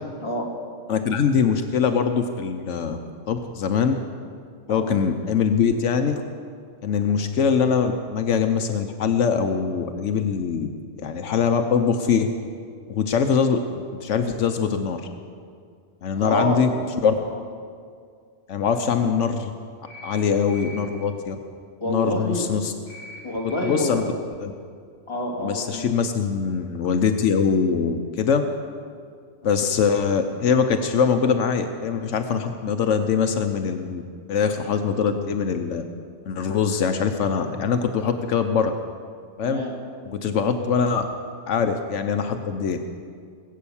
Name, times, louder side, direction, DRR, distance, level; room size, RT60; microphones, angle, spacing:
voice 1, 0.2-0.5 4.7-4.9 7.1-7.3 16.1-16.7 17.3-17.4 18.7-18.9 21.8-22.4 23.2-24.1 25.1-25.9 39.4-39.8, left 1 dB, 25° left, -2 dB, 2.4 m, -28 dB
voice 2, 0.9-3.0 3.3-3.9 4.7-6.2 6.8-10.7 11.0-12.3 12.9-13.6 14.0-15.0 16.0-16.7 17.0-17.1 18.5-19.5 20.0-21.4 21.9-22.7 23.6-24.0 24.4-24.5 25.4-28.4 29.4-34.0 34.3-35.8 36.3-38.7 39.4-39.6 40.0-41.1 41.5-42.8, left 6 dB, 80° left, 7 dB, 1.1 m, -22 dB
sound 1, 19.9-20.2 20.5-20.8 22.9-23.2 23.5-23.8, left 1 dB, 25° right, 5.1 m, -41 dB
19.5 x 8.4 x 7.1 m, 2.2 s
omnidirectional pair, 1.2 m